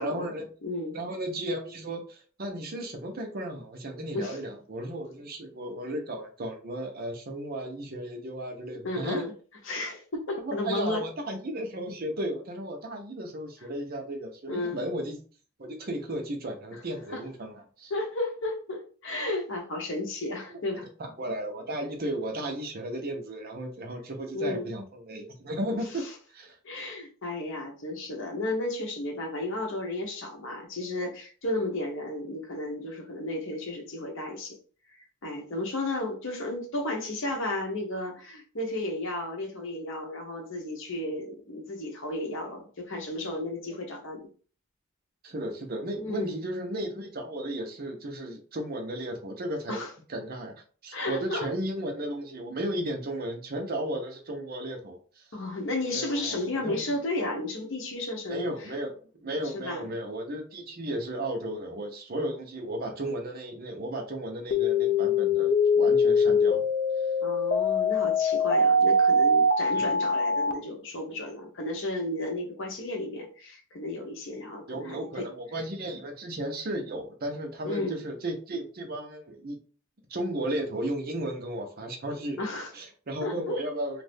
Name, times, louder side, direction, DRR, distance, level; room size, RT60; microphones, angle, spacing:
voice 1, 0.0-0.5 0.9-9.2 10.4-15.2 15.6-17.9 21.2-26.6 45.2-49.8 50.1-50.5 50.8-55.3 55.9-56.8 58.3-66.6 69.7-69.9 74.7-79.6 80.1-82.4 82.7-84.0, right 1 dB, 45° right, 3 dB, 0.7 m, -34 dB
voice 2, 0.6-1.0 4.1-4.4 8.8-9.3 9.6-11.0 14.5-14.8 17.1-17.2 17.9-20.9 24.3-24.7 26.0-26.1 26.6-34.5 35.2-44.3 46.0-46.4 49.7-49.9 50.9-51.5 55.3-58.5 59.4-59.9 67.2-75.3 77.6-78.0 82.4-82.7 83.2-83.6, left 2 dB, 60° left, 2 dB, 0.9 m, -33 dB
sound 1, 64.5-70.5, left 2 dB, 40° left, 0.4 m, -23 dB
2.6 x 2.5 x 3.4 m, 0.40 s
head